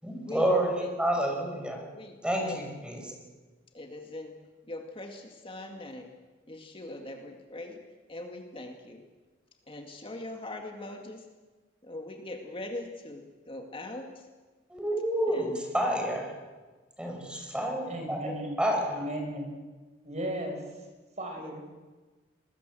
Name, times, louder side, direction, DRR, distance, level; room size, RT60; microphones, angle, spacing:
voice 1, 0.0-1.8 2.2-3.1 14.7-16.3 17.0-19.1, right 1 dB, 5° right, 2 dB, 5.8 m, -29 dB
voice 2, 2.0-2.6 3.7-4.4 4.7-6.1 6.5-7.8 8.1-9.0 9.7-11.2 11.8-14.3 15.3-15.6 21.4-21.5, left 1 dB, 30° left, 3 dB, 2.1 m, -41 dB
voice 3, 17.9-18.6 18.9-19.5 20.0-20.6 21.2-21.6, equal, 40° right, 3 dB, 5.8 m, -35 dB
24.0 x 20.5 x 7.7 m, 1.3 s
head